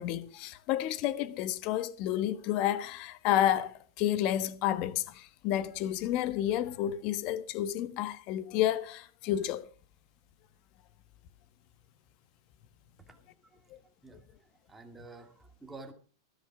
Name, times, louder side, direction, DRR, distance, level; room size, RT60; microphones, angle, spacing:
voice 1, 0.0-9.7, left 12 dB, 35° left, 1.3 m, -30 dB
voice 2, 14.0-15.9, right 3 dB, 5° right, 2.2 m, -50 dB
14.0 x 13.0 x 4.9 m
supercardioid pair, 155°, 2 cm